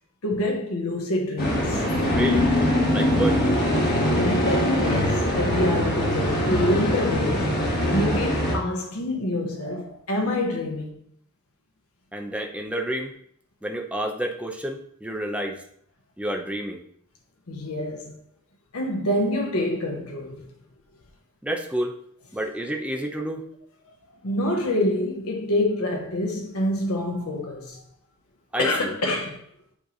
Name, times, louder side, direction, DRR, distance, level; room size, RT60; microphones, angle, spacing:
voice 1, 0.2-1.8 4.0-7.6 7.9-10.9 17.5-18.2 18.7-20.5 24.2-27.8 28.6-29.4, left 1 dB, 90° left, 1.1 m, -26 dB
sound 1, 1.4-8.6, left 1 dB, 45° left, 1.5 m, -22 dB
voice 2, 2.1-2.5 2.9-3.4 12.1-13.1 13.6-15.6 16.2-16.8 21.4-22.0 22.3-23.4 28.5-28.9, right 1 dB, 5° right, 0.7 m, -29 dB
8.8 x 3.3 x 3.9 m
head